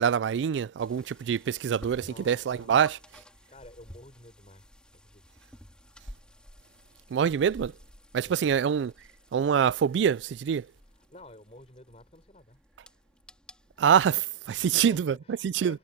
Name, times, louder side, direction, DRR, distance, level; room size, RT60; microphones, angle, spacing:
voice 1, 0.0-3.0 7.1-7.7 8.1-8.9 9.3-10.7 13.8-15.1 15.4-15.8, right 8 dB, 85° right, 0.3 m, -25 dB
sound 1, 0.8-13.9, equal, 5° left, 2.9 m, -52 dB
voice 2, 2.0-2.8 3.5-5.3 8.1-8.4 10.8-12.6 14.5-15.8, left 1 dB, 35° left, 5.3 m, -51 dB
head